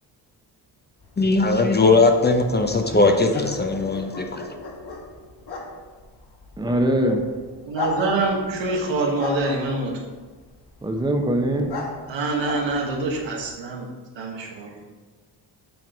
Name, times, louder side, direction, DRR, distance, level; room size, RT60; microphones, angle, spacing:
sound 1, 1.0-13.5, left 3 dB, 60° left, 1.4 m, -37 dB
voice 1, 1.2-4.4, left 3 dB, 25° left, 4 dB, 0.6 m, -19 dB
voice 2, 6.6-7.2 10.8-11.7, right 1 dB, 10° right, 3 dB, 0.8 m, -22 dB
voice 3, 7.6-9.9 12.1-13.9 14.2-14.7, right 3 dB, 80° right, 0 dB, 1.4 m, -25 dB
7.6 x 3.8 x 4.4 m, 1.3 s
cardioid pair, 75°, 44 cm